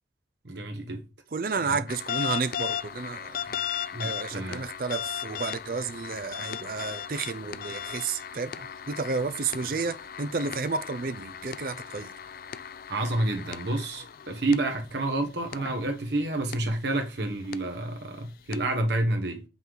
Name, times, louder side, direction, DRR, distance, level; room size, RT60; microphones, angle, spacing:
voice 1, 0.4-1.0 1.6-1.8 3.9-4.7 12.9-19.4, right 2 dB, 75° right, 1.2 m, -29 dB
voice 2, 1.3-3.6 4.0-12.1 15.1-15.2 17.8-17.9, right 4 dB, 50° right, 0.5 m, -32 dB
sound 1, 1.9-15.1 15.5-15.7 16.5-16.6 17.4-17.6 18.5-18.6, left 9 dB, 50° left, 0.3 m, -37 dB
5.5 x 3.9 x 4.6 m
head